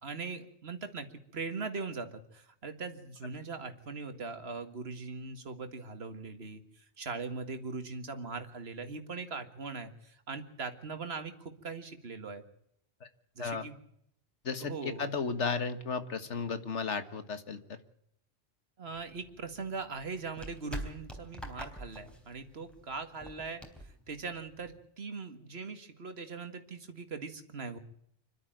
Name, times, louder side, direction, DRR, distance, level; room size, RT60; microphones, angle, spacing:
voice 1, 0.0-1.1 1.3-12.4 13.4-13.8 14.6-15.0 18.8-27.8, right 4 dB, 60° right, 8 dB, 2.1 m, -40 dB
voice 2, 14.4-17.6, left 5 dB, 75° left, 10 dB, 1.9 m, -34 dB
sound 1, 18.9-24.9, right 1 dB, ahead, 3.7 m, -46 dB
26.0 x 12.5 x 9.1 m, 0.72 s
omnidirectional pair, 1.2 m